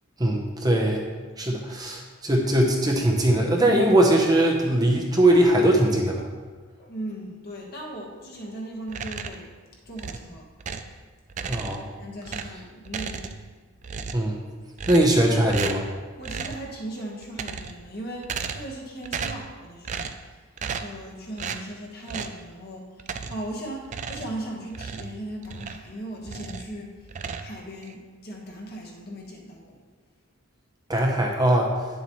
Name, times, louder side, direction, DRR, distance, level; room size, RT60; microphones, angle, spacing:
voice 1, 0.2-1.0 1.4-6.2 11.4-11.9 14.1-14.4 14.9-15.8 30.9-31.7, right 1 dB, 20° right, 0 dB, 0.8 m, -21 dB
voice 2, 6.8-9.5 9.9-10.9 12.0-13.3 16.2-20.1 20.8-26.9 27.4-29.8, right 1 dB, 45° left, -1 dB, 1.4 m, -38 dB
sound 1, 8.9-9.5 10.0-11.0 11.3-11.9 12.2-13.5 13.8-14.3 14.8-15.2 15.5-15.9 16.2-16.7 17.2-17.9 18.2-18.8 19.0-19.5 19.8-20.2 20.6-21.0 21.4-21.7 22.1-22.4 23.0-23.5 23.8-25.9 26.2-26.7 27.1-27.9, right 6 dB, 35° right, 0.3 m, -34 dB
9.7 x 7.0 x 3.1 m, 1.4 s
head